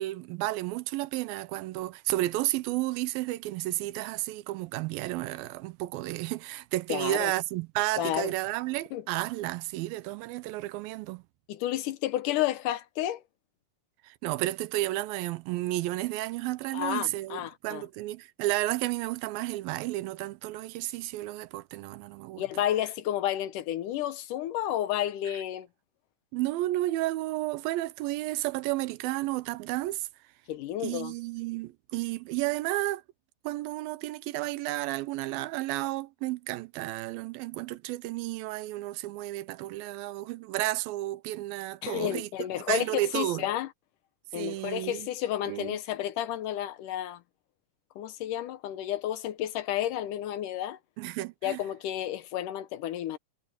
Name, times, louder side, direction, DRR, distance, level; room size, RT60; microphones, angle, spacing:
voice 1, 0.0-11.2 14.0-22.4 26.3-30.1 30.8-33.0 33.4-42.3 42.7-43.5 44.3-45.1 45.5-45.8 51.0-51.6, right 17 dB, 90° right, 2.5 m, -32 dB
voice 2, 6.9-7.3 8.0-8.3 8.9-9.0 11.5-13.2 16.7-17.8 22.4-25.7 30.5-31.1 41.8-43.7 44.3-47.2 48.0-50.8 51.4-53.2, left 12 dB, 70° left, 2.2 m, -31 dB
omnidirectional pair, 4.1 m